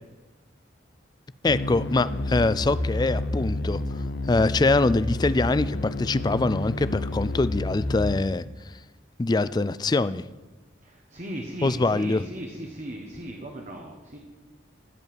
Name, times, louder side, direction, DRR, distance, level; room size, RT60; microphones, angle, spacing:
sound 1, 1.4-8.2, left 1 dB, 60° left, 0.7 m, -30 dB
voice 1, 1.4-8.8 9.2-10.2 11.6-12.2, left 3 dB, 20° left, 16 dB, 0.3 m, -24 dB
voice 2, 10.8-14.2, right 1 dB, 35° right, 1 dB, 1.2 m, -37 dB
14.0 x 5.3 x 9.4 m, 1.2 s
head